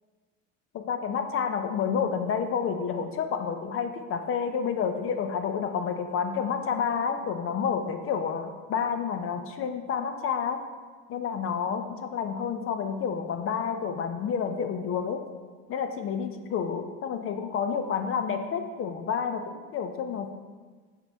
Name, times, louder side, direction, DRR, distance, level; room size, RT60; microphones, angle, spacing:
voice 1, 0.7-10.6 11.1-15.2 15.7-20.3, left 6 dB, 35° left, 7 dB, 0.5 m, -29 dB
6.9 x 4.3 x 3.4 m, 1.4 s
supercardioid pair, 115°, 38 cm